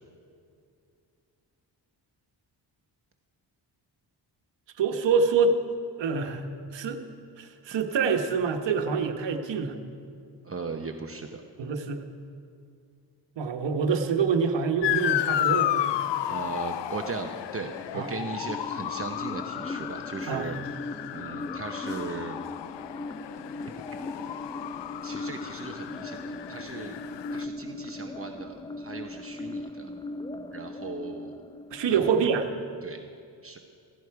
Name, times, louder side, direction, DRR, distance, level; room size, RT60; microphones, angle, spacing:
voice 1, 4.8-5.6 6.0-6.5 6.7-7.1 7.4-9.8 11.6-12.0 13.4-15.9 17.9-18.1 20.3-20.5 31.7-32.5, right 5 dB, 85° right, 5 dB, 1.3 m, -26 dB
voice 2, 10.4-11.4 16.3-20.6 21.1-22.4 25.0-27.0 27.3-29.9 30.5-31.4 31.9-32.0 32.8-33.0 33.4-33.6, right 4 dB, 30° right, 4 dB, 0.9 m, -38 dB
Motor vehicle (road) / Siren, 14.8-27.4, left 12 dB, 75° left, 0.6 m, -32 dB
sound 1, 17.6-32.6, left 2 dB, 10° left, 0.5 m, -39 dB
16.5 x 16.0 x 4.8 m, 2.4 s
cardioid pair, 95°, 43 cm